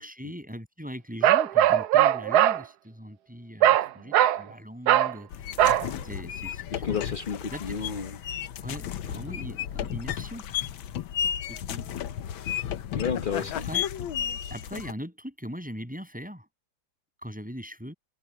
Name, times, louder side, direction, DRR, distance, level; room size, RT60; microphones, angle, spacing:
voice 1, 0.0-5.7 6.0-6.8 7.5-7.9 8.6-10.4 11.5-11.9 13.4-13.9 14.5-16.5 17.2-17.9, equal, 5° right, 7.6 m, -40 dB
Bark, 1.2-2.6 3.6-3.9 4.1-4.4 4.9-5.1 5.6-5.9, right 12 dB, 70° right, 1.0 m, -20 dB
sound 1, 5.3-14.9, left 9 dB, 90° left, 1.7 m, -33 dB
voice 2, 6.7-8.2 12.9-13.7, left 6 dB, 45° left, 0.6 m, -31 dB
omnidirectional pair, 2.1 m